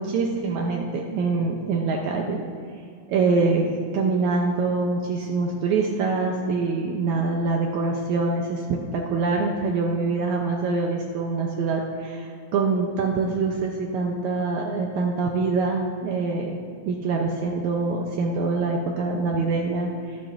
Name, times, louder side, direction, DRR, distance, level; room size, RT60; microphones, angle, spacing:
voice 1, 0.0-2.4 3.1-20.2, right 3 dB, 85° right, 1 dB, 1.7 m, -25 dB
20.5 x 7.5 x 2.6 m, 2.4 s
omnidirectional pair, 4.2 m